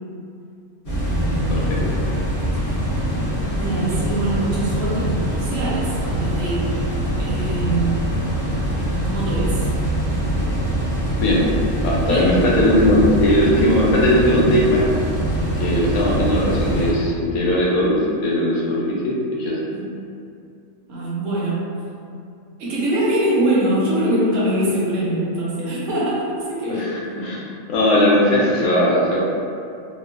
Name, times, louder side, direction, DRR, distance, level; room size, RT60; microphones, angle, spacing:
sound 1, 0.8-16.9, equal, 40° left, 0.9 m, -23 dB
voice 1, 0.9-1.7 3.5-6.9 7.2-8.2 9.0-9.7 12.1-12.4 19.7-20.0 20.9-21.7 22.6-27.4, right 1 dB, 70° right, -7 dB, 1.0 m, -23 dB
voice 2, 11.8-14.9 15.5-19.5 26.8-27.4 27.7-29.2, left 1 dB, 85° left, -5 dB, 1.1 m, -18 dB
2.9 x 2.1 x 2.3 m, 2.5 s
omnidirectional pair, 1.5 m